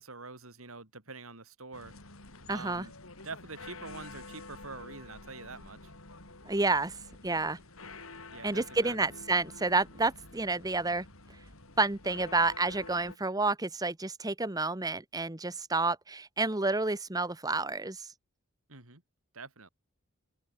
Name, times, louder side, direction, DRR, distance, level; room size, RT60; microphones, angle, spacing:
voice 1, 0.0-1.9 2.5-2.9 3.2-5.9 8.3-9.1 18.7-19.0 19.3-19.7, right 3 dB, 85° right, 4.2 m, -45 dB
sound 1, 1.7-13.2, left 3 dB, 80° left, 6.6 m, -49 dB
voice 2, 2.5-2.8 6.5-7.0 7.2-7.6 8.4-11.0 11.8-18.1, right 3 dB, 15° right, 1.2 m, -29 dB
open air
head